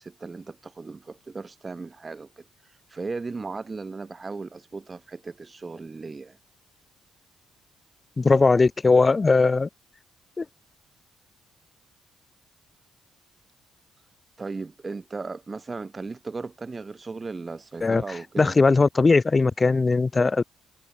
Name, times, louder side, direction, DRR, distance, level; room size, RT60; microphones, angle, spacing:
voice 1, 0.0-2.5 2.9-6.4 14.4-18.6, right 4 dB, 30° right, 5.7 m, -36 dB
voice 2, 8.2-9.7 10.4-10.5 17.8-18.0 18.4-20.4, left 3 dB, 25° left, 0.8 m, -19 dB
cardioid pair, 90°, 0 cm